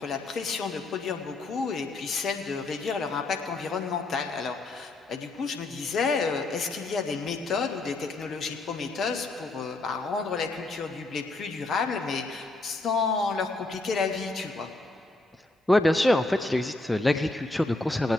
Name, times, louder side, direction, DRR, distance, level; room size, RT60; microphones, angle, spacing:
voice 1, 0.0-14.7, left 5 dB, 55° left, 4 dB, 1.2 m, -30 dB
voice 2, 15.7-18.1, left 1 dB, 10° left, 8 dB, 0.5 m, -24 dB
20.5 x 8.6 x 3.3 m, 2.5 s
figure-of-eight pair, 45°, 0 cm